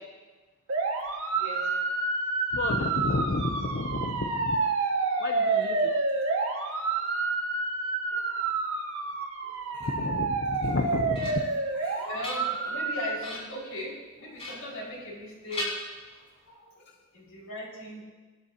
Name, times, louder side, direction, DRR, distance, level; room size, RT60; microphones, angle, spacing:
sound 1, 0.7-13.2, right 3 dB, 75° right, 1.9 m, -29 dB
voice 1, 1.3-1.7 5.1-5.2 5.6-5.9 6.9-7.0 8.1-8.5 9.4-9.9 12.0-15.7 16.4-16.8 17.1-18.0, equal, 80° left, -4 dB, 5.6 m, -39 dB
voice 2, 2.5-4.6 5.2-6.0 9.7-12.1 16.9-17.0, left 2 dB, 55° left, 4 dB, 0.7 m, -32 dB
sound 2, 10.6-11.6 12.0-12.8 13.2-13.6 14.4-15.2 15.5-16.5, left 1 dB, 30° left, 5.2 m, -39 dB
24.5 x 11.5 x 2.9 m, 1.3 s
head